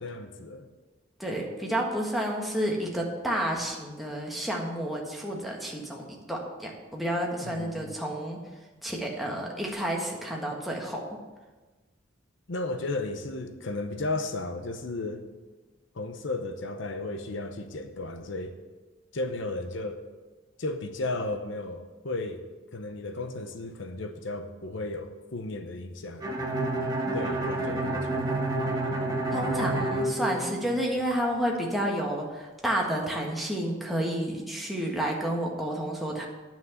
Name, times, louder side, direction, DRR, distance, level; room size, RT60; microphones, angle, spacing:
voice 1, 0.0-0.7 7.4-7.9 12.5-15.2 15.9-18.5 19.1-20.1 20.6-22.4 22.7-26.3 27.1-28.4, left 2 dB, 65° left, 7 dB, 0.8 m, -34 dB
voice 2, 1.2-8.4 8.8-11.2 29.3-36.3, right 1 dB, ahead, -2 dB, 1.6 m, -30 dB
Bowed string instrument, 26.2-31.0, right 2 dB, 20° right, 1.3 m, -29 dB
9.9 x 6.1 x 7.9 m, 1.3 s
head